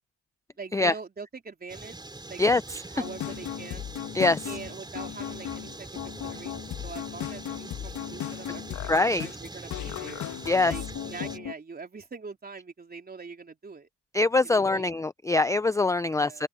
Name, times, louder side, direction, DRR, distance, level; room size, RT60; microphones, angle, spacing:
voice 1, 0.6-2.0 2.3-2.4 2.9-3.9 4.5-10.3 10.7-13.9 14.4-14.9 16.1-16.5, right 4 dB, 30° right, 3.7 m, -43 dB
sound 1, 1.7-11.4, right 2 dB, 15° right, 4.3 m, -43 dB
voice 2, 2.4-2.8 4.1-4.6 8.9-9.3 10.5-10.7 14.1-16.5, left 3 dB, 10° left, 0.5 m, -23 dB
sound 2, 3.0-11.5, left 11 dB, 75° left, 2.2 m, -36 dB
open air
cardioid pair, 90°, 30 cm